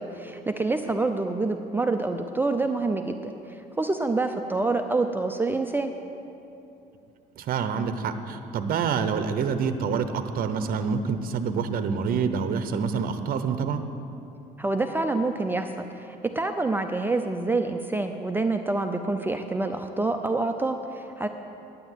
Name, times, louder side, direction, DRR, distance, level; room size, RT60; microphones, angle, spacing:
voice 1, 0.0-5.9 14.6-21.3, right 3 dB, 10° right, 6 dB, 0.5 m, -27 dB
voice 2, 7.4-13.8, right 6 dB, 60° right, 9 dB, 0.9 m, -27 dB
10.0 x 9.5 x 8.0 m, 2.8 s
cardioid pair, 110°, 17 cm